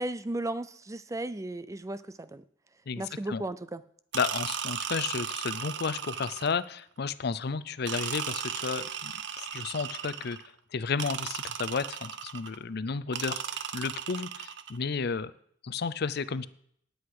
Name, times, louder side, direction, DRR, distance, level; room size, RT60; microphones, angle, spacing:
voice 1, 0.0-2.4 3.0-3.8, right 1 dB, 15° right, 14 dB, 0.4 m, -35 dB
voice 2, 2.9-3.4 4.1-15.3 15.6-16.5, left 5 dB, 55° left, 15 dB, 0.6 m, -33 dB
sound 1, 4.1-6.7 7.8-10.5 11.0-12.6 13.1-14.8, right 8 dB, 65° right, 0.7 m, -36 dB
18.5 x 8.0 x 4.8 m, 0.67 s
head